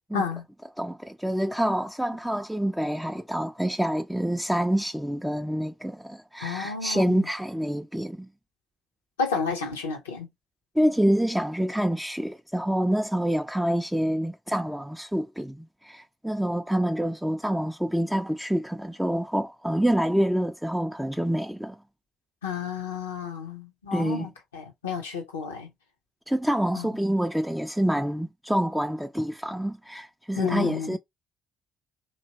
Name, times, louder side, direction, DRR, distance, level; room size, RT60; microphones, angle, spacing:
voice 1, 0.1-0.4 6.4-7.3 9.2-10.3 22.4-25.7 26.7-26.9 30.4-31.0, left 5 dB, 85° left, 0.6 m, -31 dB
voice 2, 0.8-8.3 10.8-21.8 23.9-24.3 26.3-31.0, equal, 5° right, 0.3 m, -27 dB
2.8 x 2.8 x 2.8 m
hypercardioid pair, 45°, 0 cm